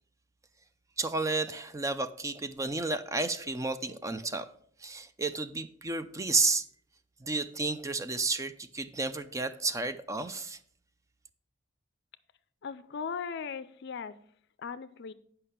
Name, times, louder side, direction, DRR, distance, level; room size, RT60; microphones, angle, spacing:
voice 1, 1.0-4.5 4.8-6.6 7.2-10.6, right 3 dB, 15° right, 11 dB, 0.4 m, -31 dB
voice 2, 12.6-14.1 14.6-15.1, left 6 dB, 60° left, 13 dB, 0.4 m, -38 dB
8.4 x 5.5 x 5.7 m, 0.62 s
head